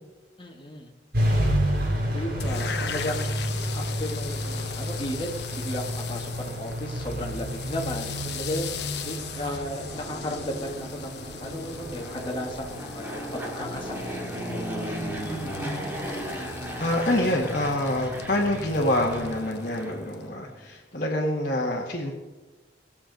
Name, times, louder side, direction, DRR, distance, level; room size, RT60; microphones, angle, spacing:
voice 1, 0.4-0.9 2.1-3.2 3.7-8.7 9.0-14.8, equal, 25° left, 1 dB, 1.7 m, -35 dB
sound 1, 1.1-19.4, equal, 55° right, 5.3 m, -32 dB
sound 2, 2.4-20.3, left 8 dB, 65° left, 0.9 m, -40 dB
Fixed-wing aircraft airplane, 9.6-20.6, equal, 10° right, 2.1 m, -36 dB
voice 2, 16.8-22.1, left 1 dB, 45° left, -5 dB, 1.7 m, -26 dB
19.0 x 7.3 x 5.3 m, 1.2 s
head